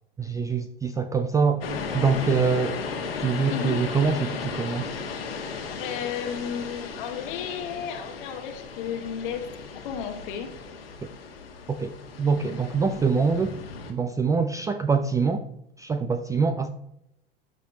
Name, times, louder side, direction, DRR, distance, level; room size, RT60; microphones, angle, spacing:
voice 1, 0.2-1.7 1.9-2.8 3.2-5.0 11.7-13.5 13.9-15.5 15.8-16.7, right 5 dB, 10° right, 9 dB, 0.4 m, -24 dB
sound 1, 1.6-13.9, left 5 dB, 75° left, 1.6 m, -35 dB
voice 2, 3.5-3.8 5.8-9.5 9.8-10.5, left 7 dB, 55° left, 5 dB, 1.1 m, -33 dB
13.5 x 4.8 x 3.1 m, 0.78 s
figure-of-eight pair, 80°, 30 cm